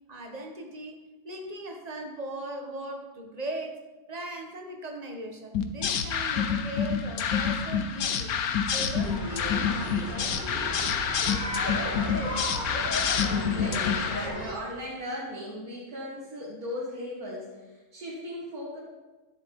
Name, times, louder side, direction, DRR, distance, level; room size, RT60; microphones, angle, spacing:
voice 1, 0.1-1.0 1.2-3.8 4.1-8.4 8.7-10.4, right 1 dB, 30° right, 4 dB, 1.2 m, -38 dB
sound 1, 5.5-14.3, left 7 dB, 80° left, 1.3 m, -28 dB
sound 2, 8.9-14.5, equal, 30° left, 1.8 m, -34 dB
voice 2, 13.4-18.8, left 1 dB, 85° right, -8 dB, 2.9 m, -37 dB
12.5 x 10.5 x 3.7 m, 1.2 s
omnidirectional pair, 1.6 m